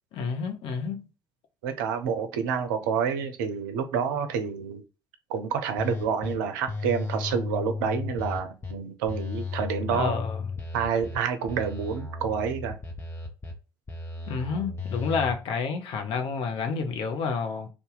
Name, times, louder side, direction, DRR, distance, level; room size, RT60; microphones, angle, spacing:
voice 1, 0.1-1.1 9.9-10.5 14.3-17.7, left 5 dB, 50° left, 0.7 m, -29 dB
voice 2, 1.6-4.8 5.3-10.2 10.7-12.8, right 7 dB, 65° right, 0.5 m, -28 dB
sound 1, 5.8-6.3 6.7-8.7 9.1-11.2 11.5-13.5 13.9-15.3, left 4 dB, 25° left, 1.0 m, -34 dB
2.7 x 2.4 x 3.7 m
figure-of-eight pair, 50°, 11 cm